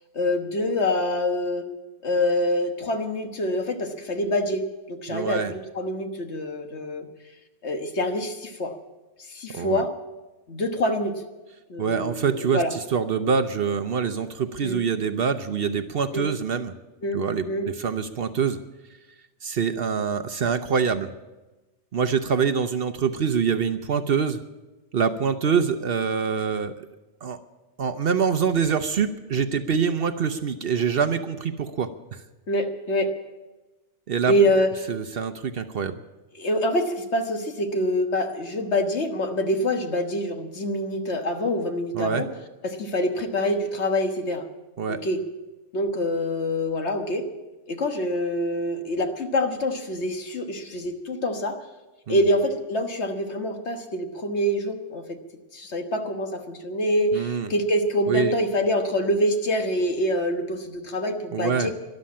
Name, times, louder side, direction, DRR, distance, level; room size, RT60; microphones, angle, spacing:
voice 1, 0.1-1.7 2.0-4.6 4.9-5.4 5.7-7.1 7.6-8.7 9.2-9.9 10.5-11.1 11.7-12.7 14.6-14.8 16.1-16.3 17.0-17.2 17.5-17.7 32.5-33.1 34.3-34.8 36.4-42.3 42.6-44.5 44.9-45.2 45.7-47.3 47.7-51.7 52.1-55.2 55.5-61.7, left 1 dB, 70° left, 5 dB, 1.7 m, -25 dB
voice 2, 5.1-5.5 9.5-9.8 11.8-16.7 17.1-18.6 19.4-21.1 21.9-24.4 24.9-26.9 27.2-27.4 27.8-32.2 34.1-34.3 34.9-35.9 41.9-42.2 44.8-45.0 52.1-52.2 57.1-57.5 58.1-58.3 61.3-61.7, right 6 dB, 60° right, 9 dB, 0.9 m, -25 dB
13.0 x 12.0 x 8.5 m, 1.1 s
omnidirectional pair, 1.2 m